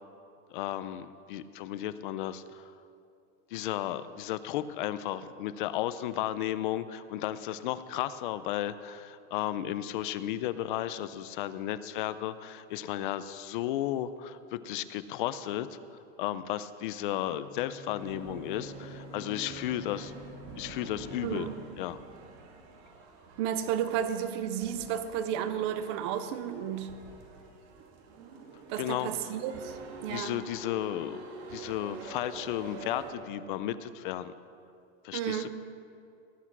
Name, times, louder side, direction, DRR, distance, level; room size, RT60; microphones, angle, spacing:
voice 1, 0.5-2.7 3.5-15.8 16.2-20.2 20.6-21.5 21.8-22.0 28.8-29.1 30.1-34.3 35.0-35.5, left 12 dB, 40° left, 14 dB, 0.5 m, -34 dB
Bowed string instrument, 17.2-22.0, equal, 65° left, 4.2 m, -49 dB
sound 1, 18.0-33.1, right 4 dB, 55° right, 2.2 m, -47 dB
voice 2, 21.2-21.5 23.4-26.9 28.7-30.4 35.1-35.5, right 9 dB, 25° right, 11 dB, 0.4 m, -32 dB
18.5 x 8.0 x 6.0 m, 2.5 s
supercardioid pair, 170°, 38 cm